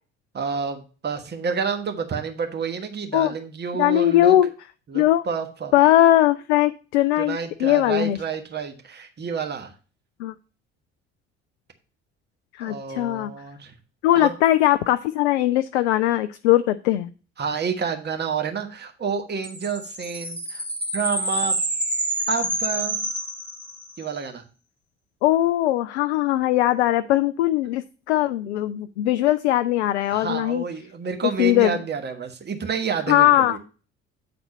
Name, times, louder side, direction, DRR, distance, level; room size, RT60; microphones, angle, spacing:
voice 1, 0.3-4.4 4.9-5.7 7.2-9.7 12.6-13.7 14.1-14.3 17.4-20.6 20.9-21.6 22.3-23.0 24.0-24.4 30.1-33.6, right 6 dB, 30° right, 5 dB, 1.3 m, -29 dB
voice 2, 3.8-4.5 4.9-5.2 5.7-8.2 10.2-10.3 12.5-13.3 14.0-17.1 25.2-30.6 31.4-31.8 33.1-33.6, left 14 dB, 70° left, 12 dB, 0.5 m, -20 dB
sound 1, 19.4-24.0, right 1 dB, 5° left, 1.8 m, -28 dB
8.8 x 4.2 x 5.3 m, 0.36 s
figure-of-eight pair, 50°, 35 cm